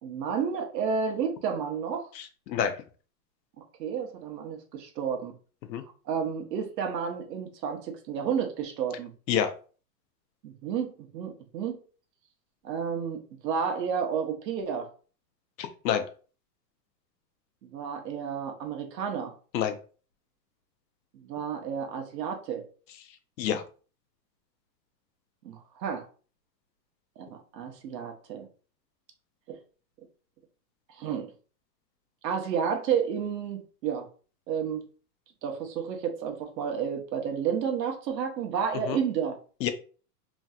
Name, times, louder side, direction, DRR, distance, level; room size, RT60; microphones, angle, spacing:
voice 1, 0.0-2.1 3.8-5.3 6.1-9.1 10.4-11.8 12.6-14.9 17.6-19.3 21.1-22.6 25.4-26.0 27.2-28.5 29.5-29.6 31.0-31.3 32.2-34.1 34.5-34.9 35.4-39.4, right 7 dB, 75° right, 1.0 m, -31 dB
voice 2, 2.1-2.8 5.7-5.8 9.3-9.5 15.6-16.1 19.5-19.8 23.4-23.6 38.9-39.0 39.6-39.7, left 9 dB, 85° left, 0.7 m, -28 dB
3.1 x 2.7 x 2.3 m
supercardioid pair, 150°, 50 cm